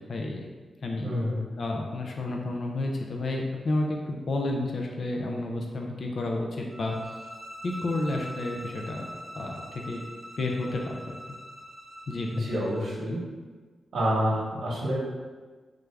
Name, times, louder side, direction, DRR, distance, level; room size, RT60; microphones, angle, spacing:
voice 1, 0.1-0.5 0.8-1.2 1.6-7.0 7.6-9.1 9.4-10.0 10.4-11.2 12.1-12.5, left 2 dB, 50° left, 1 dB, 0.3 m, -31 dB
voice 2, 1.0-1.4 12.3-13.2 13.9-14.9, equal, 75° right, -7 dB, 0.9 m, -28 dB
sound 1, 6.7-12.8, equal, 25° right, 0.7 m, -43 dB
3.3 x 2.4 x 3.2 m, 1.4 s
wide cardioid pair, 165°, 0 cm